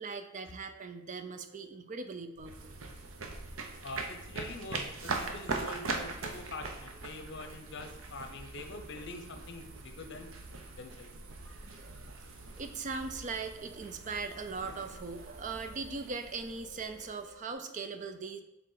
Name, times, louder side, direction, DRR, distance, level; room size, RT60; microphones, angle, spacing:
voice 1, 0.0-2.7 11.6-12.2 12.6-18.4, right 4 dB, 40° right, 8 dB, 0.5 m, -40 dB
sound 1, 2.4-17.5, right 3 dB, 80° right, 0.7 m, -42 dB
voice 2, 3.8-10.3 10.8-11.1 14.6-15.0, left 2 dB, 60° left, 6 dB, 0.7 m, -44 dB
6.6 x 4.0 x 4.0 m, 0.85 s
head